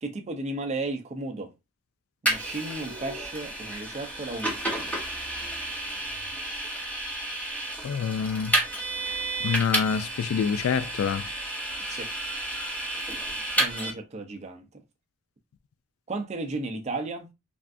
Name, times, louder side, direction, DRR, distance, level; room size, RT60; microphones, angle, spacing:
voice 1, 0.0-1.5 2.2-5.0 11.8-12.1 13.6-14.6 16.1-17.3, right 2 dB, 30° right, 0.5 m, -34 dB
Vehicle, 2.3-13.9, right 1 dB, 5° left, 0.9 m, -31 dB
voice 2, 7.8-8.5 9.4-11.3, left 6 dB, 75° left, 0.3 m, -26 dB
3.4 x 2.4 x 2.5 m
head